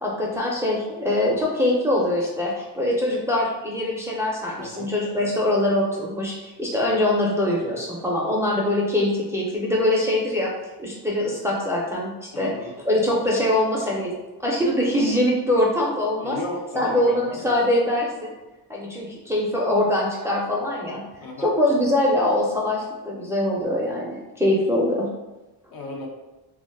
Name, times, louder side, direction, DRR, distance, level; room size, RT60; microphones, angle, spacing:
voice 1, 0.0-10.5 10.8-12.5 12.8-14.1 14.4-16.4 16.8-18.3 18.7-21.0 21.4-25.1, left 1 dB, 5° right, -4 dB, 0.4 m, -23 dB
voice 2, 4.6-4.9 12.3-12.7 16.2-17.6 21.2-21.5 25.7-26.1, left 2 dB, 60° left, 0 dB, 0.7 m, -34 dB
2.4 x 2.3 x 3.4 m, 1.1 s
cardioid pair, 130°, 41 cm